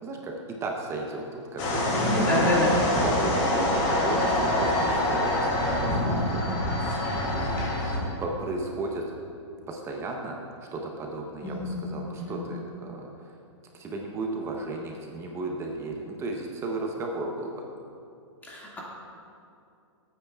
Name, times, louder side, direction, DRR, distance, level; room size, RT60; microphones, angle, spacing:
voice 1, 0.0-2.1 3.0-7.7 8.2-9.0 9.7-10.3 10.7-13.3 13.7-17.6, right 2 dB, 15° right, 1 dB, 0.8 m, -34 dB
sound 1, 1.6-8.0, left 1 dB, 35° left, 2.5 m, -25 dB
voice 2, 2.1-2.7 11.4-11.8 12.1-12.3 18.4-18.8, left 1 dB, 10° left, -5 dB, 2.0 m, -27 dB
18.0 x 8.9 x 2.3 m, 2.5 s
hypercardioid pair, 145°, 16 cm